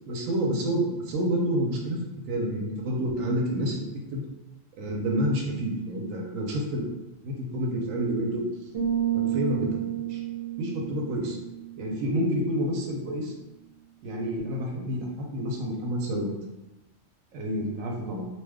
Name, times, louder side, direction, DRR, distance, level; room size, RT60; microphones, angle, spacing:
voice 1, 0.1-2.0 2.3-3.9 4.1-4.2 4.8-6.9 7.2-8.4 9.1-9.8 10.1-10.2 10.6-11.4 11.8-13.3 14.0-16.3 17.3-18.3, equal, 80° right, 0 dB, 1.0 m, -28 dB
sound 1, 8.7-12.5, right 11 dB, 60° right, 0.8 m, -31 dB
2.8 x 2.2 x 3.4 m, 0.99 s
omnidirectional pair, 1.4 m